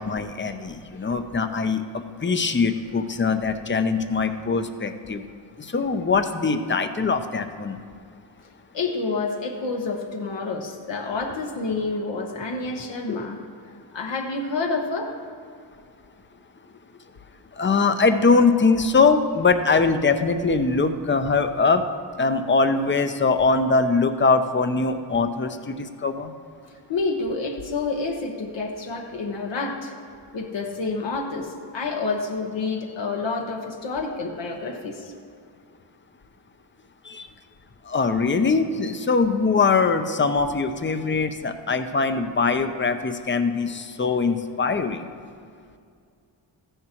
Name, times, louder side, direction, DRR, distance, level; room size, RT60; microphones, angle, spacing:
voice 1, 0.0-5.2 5.6-7.8 13.1-13.3 17.6-21.8 22.2-26.3 37.0-37.3 37.9-45.1, left 4 dB, 25° left, 9 dB, 0.6 m, -22 dB
voice 2, 8.7-13.4 13.9-15.1 26.9-29.9 30.3-35.1, left 3 dB, 75° left, 0 dB, 1.2 m, -28 dB
14.5 x 10.0 x 3.0 m, 2.3 s
cardioid pair, 90°, 45 cm